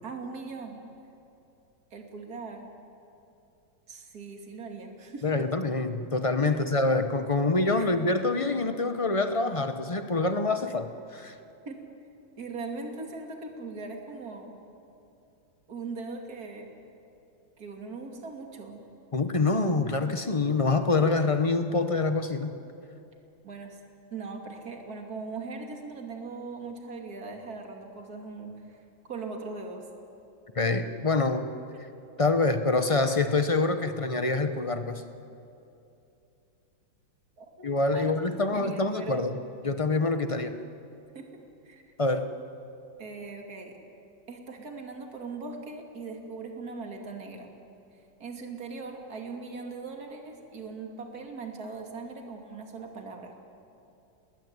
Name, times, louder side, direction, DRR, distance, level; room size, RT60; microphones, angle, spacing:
voice 1, 0.0-0.8 1.9-2.7 3.9-5.5 6.4-6.6 7.8-8.0 11.6-11.8 12.4-14.6 15.7-16.7 17.6-18.8 23.4-23.8 24.1-29.9 31.7-31.8 37.4-39.4 41.1-41.8 43.0-43.8 44.3-47.5 48.2-53.3, right 4 dB, 45° right, 2 dB, 3.0 m, -40 dB
voice 2, 5.2-11.3 19.1-22.5 30.5-31.5 32.2-35.0 37.6-39.4 39.6-40.5 42.0-42.2, left 3 dB, 30° left, 8 dB, 0.6 m, -26 dB
30.0 x 20.5 x 9.7 m, 2.7 s
omnidirectional pair, 2.3 m